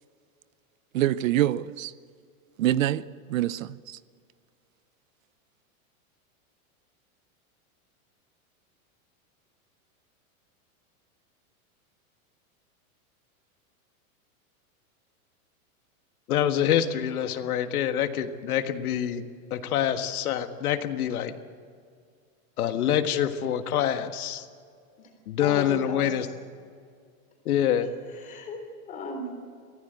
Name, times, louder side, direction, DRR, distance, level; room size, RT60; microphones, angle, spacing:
voice 1, 0.9-1.9 2.6-4.0, right 13 dB, 65° right, 0.7 m, -26 dB
voice 2, 16.3-21.3 22.6-24.4 25.3-26.2 27.4-27.9, left 10 dB, 85° left, 1.7 m, -26 dB
voice 3, 25.4-26.3 27.8-29.3, left 2 dB, 20° left, 3.4 m, -37 dB
23.5 x 16.0 x 8.1 m
supercardioid pair, 175°, 43 cm